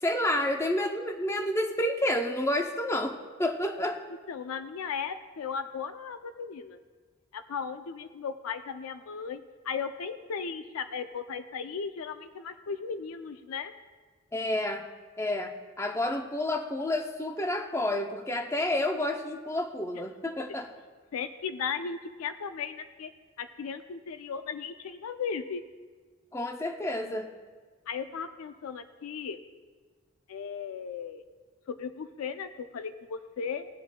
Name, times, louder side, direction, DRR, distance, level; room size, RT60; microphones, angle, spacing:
voice 1, 0.0-4.0 14.3-14.9 15.2-20.7 26.3-27.3, left 1 dB, 15° left, 5 dB, 0.5 m, -30 dB
voice 2, 4.3-6.8 7.3-13.7 21.1-23.1 23.4-25.6 27.9-29.4 30.3-31.2 31.7-33.7, left 6 dB, 90° left, 10 dB, 0.4 m, -36 dB
20.0 x 7.6 x 2.2 m, 1.5 s
head